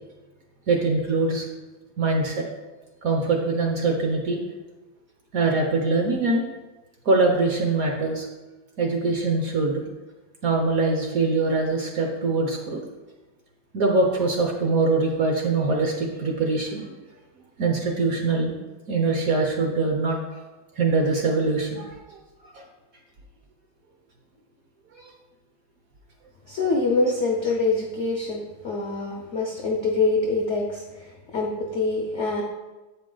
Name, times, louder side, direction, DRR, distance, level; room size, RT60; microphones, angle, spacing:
voice 1, 0.7-1.5 2.0-2.4 3.0-4.4 5.3-6.4 7.0-8.3 8.8-9.8 10.4-12.8 13.7-17.0 17.6-18.6 18.9-20.2 20.8-22.2 22.4-22.6 25.0-25.1, right 3 dB, 60° right, 1 dB, 1.0 m, -23 dB
voice 2, 26.5-32.4, left 3 dB, 65° left, 0 dB, 0.7 m, -25 dB
7.9 x 5.0 x 3.8 m, 1.2 s
omnidirectional pair, 2.2 m